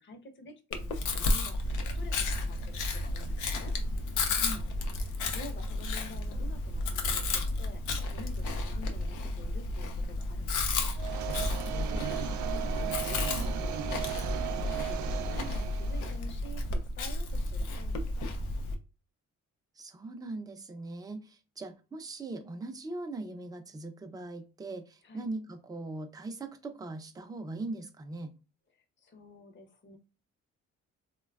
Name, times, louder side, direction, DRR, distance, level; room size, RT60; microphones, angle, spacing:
voice 1, 0.0-3.7 5.0-11.0 12.5-18.5 25.0-25.3 28.7-30.0, left 1 dB, 40° left, 5 dB, 0.8 m, -49 dB
Chewing mastication, 0.7-18.7, left 2 dB, 90° left, 0.6 m, -32 dB
voice 2, 4.2-4.6 11.5-12.1 19.8-28.3, right 2 dB, 15° right, 5 dB, 0.5 m, -40 dB
sound 1, 11.0-16.2, right 11 dB, 70° right, 0.5 m, -36 dB
3.1 x 2.2 x 2.3 m, 0.31 s
cardioid pair, 90°, 30 cm